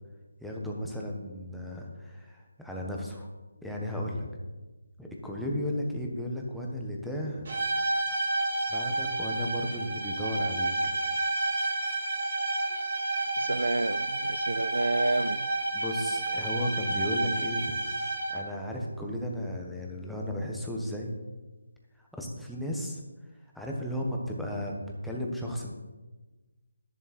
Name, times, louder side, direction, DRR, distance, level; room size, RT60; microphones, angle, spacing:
voice 1, 0.4-3.3 3.6-4.3 5.0-7.5 8.7-10.7 15.7-17.7 18.3-21.1 22.0-23.0 23.5-25.7, equal, ahead, 1.3 m, -34 dB
sound 1, 7.5-18.6, right 2 dB, 50° right, 3.7 m, -30 dB
voice 2, 13.4-15.5, right 2 dB, 80° right, 0.4 m, -29 dB
11.0 x 10.5 x 4.3 m
figure-of-eight pair, 160°, 0 cm